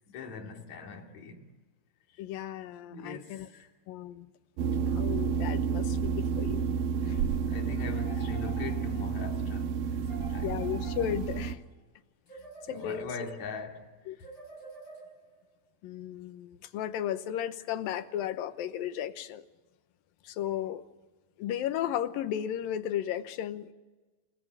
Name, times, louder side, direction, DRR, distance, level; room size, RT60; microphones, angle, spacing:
voice 1, 0.0-1.4 2.9-3.7 7.0-10.6 12.7-14.3, left 4 dB, 55° left, 3.6 m, -42 dB
voice 2, 2.2-3.5 3.9-4.3 4.9-6.7 7.1-7.2 10.4-11.6 12.7-13.0 14.1-14.2 15.8-19.4 20.2-20.8 21.4-23.7, left 11 dB, 80° left, 2.7 m, -34 dB
sound 1, 4.6-11.5, right 6 dB, 80° right, 2.9 m, -30 dB
sound 2, 7.9-9.2 10.0-11.6 12.3-13.4 14.2-15.4, right 2 dB, 20° left, 7.0 m, -48 dB
28.5 x 18.5 x 8.6 m
omnidirectional pair, 4.1 m